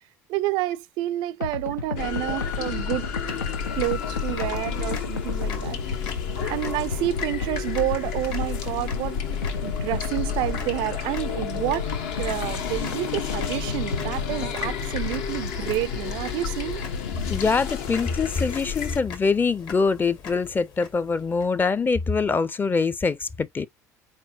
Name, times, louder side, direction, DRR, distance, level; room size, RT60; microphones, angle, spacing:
voice 1, 0.3-3.1 3.7-6.0 6.4-9.2 9.6-11.9 12.2-16.8, right 17 dB, 55° right, 0.3 m, -29 dB
sound 1, 1.4-17.4, left 4 dB, 90° left, 0.6 m, -34 dB
sound 2, 1.9-19.0, left 8 dB, 65° left, 1.1 m, -31 dB
sound 3, 3.3-22.0, left 6 dB, 50° left, 1.5 m, -43 dB
voice 2, 17.3-23.7, left 4 dB, 20° left, 0.6 m, -24 dB
4.4 x 4.3 x 2.8 m
hypercardioid pair, 65°, 9 cm